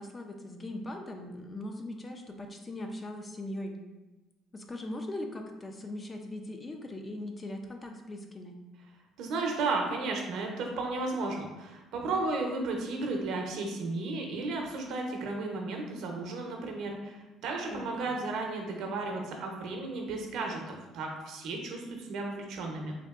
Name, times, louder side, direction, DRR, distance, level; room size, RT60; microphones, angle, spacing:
voice 1, 0.0-3.8 4.5-8.6 17.7-17.9 18.1-18.2, left 1 dB, 25° left, 4 dB, 0.4 m, -40 dB
voice 2, 9.2-17.2 17.4-22.9, right 3 dB, 70° right, 1 dB, 0.6 m, -34 dB
3.5 x 2.7 x 2.4 m, 1.1 s
cardioid pair, 110°, 0 cm